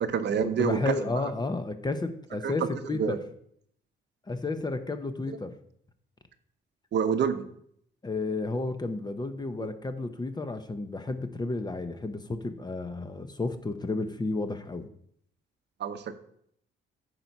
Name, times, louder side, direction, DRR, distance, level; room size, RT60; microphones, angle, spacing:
voice 1, 0.0-1.3 2.4-3.2 6.9-7.4 9.6-9.7 15.8-16.1, right 7 dB, 60° right, 9 dB, 0.8 m, -28 dB
voice 2, 0.6-3.2 4.3-5.5 8.0-14.9, left 3 dB, 20° left, 9 dB, 0.8 m, -32 dB
8.9 x 4.6 x 5.4 m, 0.69 s
cardioid pair, 90°, 20 cm